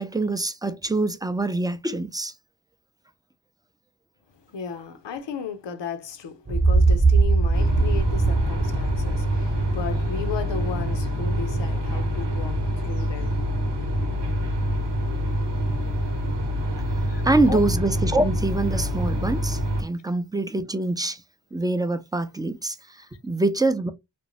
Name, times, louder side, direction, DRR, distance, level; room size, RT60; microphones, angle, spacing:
voice 1, 0.0-2.3 17.2-21.2 21.5-23.9, right 2 dB, 10° right, 0.4 m, -25 dB
voice 2, 4.5-13.4 17.0-17.6, left 5 dB, 80° left, 0.6 m, -35 dB
sound 1, 6.5-10.3, right 3 dB, 25° right, 0.9 m, -21 dB
sound 2, 7.5-19.8, equal, 80° right, 0.9 m, -26 dB
2.6 x 2.1 x 3.0 m
cardioid pair, 40°, 42 cm